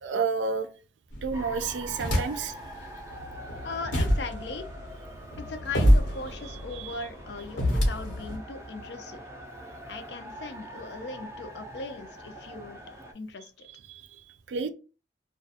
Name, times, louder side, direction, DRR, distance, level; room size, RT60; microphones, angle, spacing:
voice 1, 0.0-0.7 1.2-2.5 6.7-7.0 13.9-14.7, right 5 dB, 80° right, 0.4 m, -31 dB
sound 1, 1.1-2.6 3.1-8.4, equal, 85° left, 1.1 m, -27 dB
sound 2, 1.3-13.1, equal, 15° right, 0.4 m, -44 dB
voice 2, 3.6-4.7 5.4-9.2 9.9-12.8 13.1-13.7, left 3 dB, 65° left, 0.4 m, -39 dB
2.4 x 2.2 x 2.7 m
head